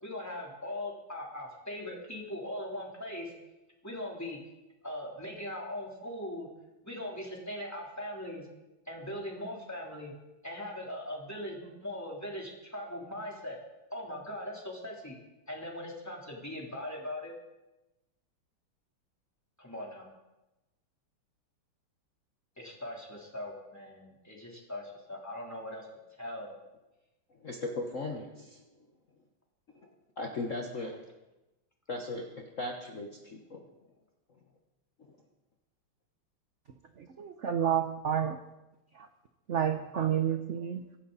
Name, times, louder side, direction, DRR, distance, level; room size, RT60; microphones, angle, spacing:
voice 1, 0.0-3.3 3.8-4.4 4.8-6.5 6.8-8.5 8.8-10.1 10.4-13.6 13.9-15.2 15.5-17.3 19.6-20.1 22.6-25.9 26.2-26.5 30.8-31.0, left 1 dB, 5° left, -2 dB, 3.3 m, -40 dB
voice 2, 27.4-28.6 29.8-31.0 31.9-32.3 32.6-33.6, left 2 dB, 40° left, 1 dB, 1.4 m, -37 dB
voice 3, 37.0-38.4 38.9-39.1 39.5-41.0, right 9 dB, 55° right, 7 dB, 0.8 m, -30 dB
24.5 x 11.0 x 4.1 m, 1.0 s
omnidirectional pair, 2.3 m